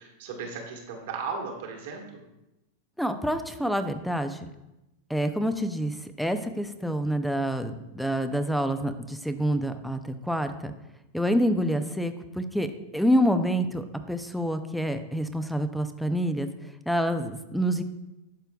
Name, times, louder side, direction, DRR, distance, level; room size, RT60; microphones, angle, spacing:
voice 1, 0.0-2.2, right 5 dB, 65° right, 1 dB, 1.5 m, -36 dB
voice 2, 3.0-4.5 5.1-10.7 11.1-16.5 16.9-17.8, equal, ahead, 9 dB, 0.5 m, -27 dB
11.5 x 4.4 x 2.3 m, 0.94 s
hypercardioid pair, 110°, 0 cm